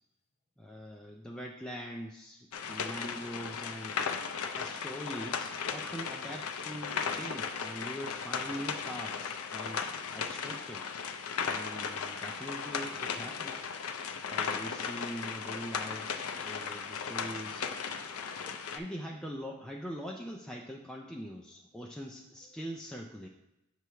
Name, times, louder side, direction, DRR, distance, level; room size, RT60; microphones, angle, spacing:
voice 1, 0.6-9.8 10.1-10.9 11.4-13.7 14.3-17.8 18.7-23.3, equal, 5° left, 0 dB, 0.3 m, -43 dB
sound 1, 2.5-18.8, left 6 dB, 75° left, 0.5 m, -36 dB
voice 2, 18.0-18.7 21.0-21.2 21.7-22.1 22.4-22.7, left 2 dB, 30° left, 4 dB, 0.7 m, -59 dB
7.7 x 3.1 x 5.6 m, 0.93 s
head